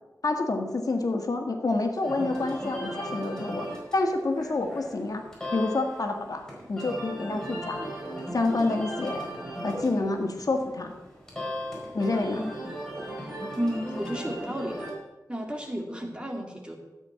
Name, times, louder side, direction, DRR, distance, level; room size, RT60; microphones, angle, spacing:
voice 1, 0.2-3.7 3.9-5.2 5.5-7.8 8.3-9.3 9.6-10.9 11.9-12.4, left 2 dB, 65° left, 4 dB, 1.6 m, -28 dB
sound 1, 2.0-14.9, equal, 10° left, 4.7 m, -37 dB
voice 2, 12.3-12.7 13.6-14.9 15.3-16.8, equal, 15° right, 1 dB, 2.5 m, -32 dB
12.5 x 8.7 x 5.7 m, 1.1 s
wide cardioid pair, 80°, 7 cm